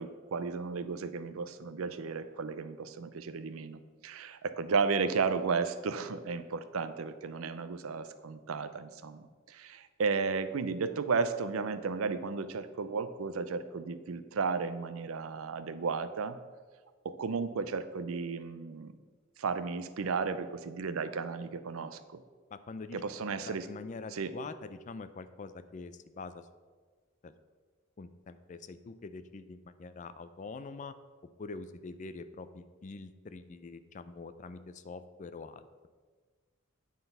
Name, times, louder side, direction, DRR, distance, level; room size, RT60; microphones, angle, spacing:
voice 1, 0.0-16.4 17.0-18.9 19.4-22.2 22.9-23.7 24.1-24.3, right 5 dB, 90° right, 12 dB, 0.5 m, -34 dB
voice 2, 22.5-23.0 23.4-26.4 27.2-27.3 28.0-30.9 31.4-35.7, left 4 dB, 35° left, 12 dB, 0.4 m, -45 dB
9.2 x 3.9 x 5.4 m, 1.5 s
head